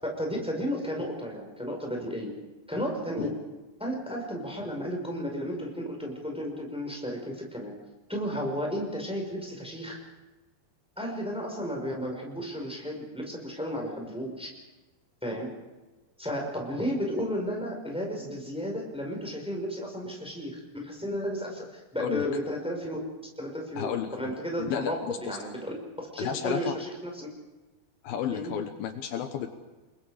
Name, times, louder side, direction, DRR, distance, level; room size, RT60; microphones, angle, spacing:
voice 1, 0.0-2.3 2.7-3.3 3.8-7.7 8.1-10.0 11.0-14.6 15.2-15.5 16.2-23.0 23.4-27.3 28.3-28.5, equal, ahead, 0 dB, 4.9 m, -33 dB
voice 2, 23.8-25.4 26.2-26.8 28.0-29.5, left 9 dB, 75° left, 7 dB, 2.9 m, -32 dB
30.0 x 22.0 x 5.0 m, 1.2 s
omnidirectional pair, 4.5 m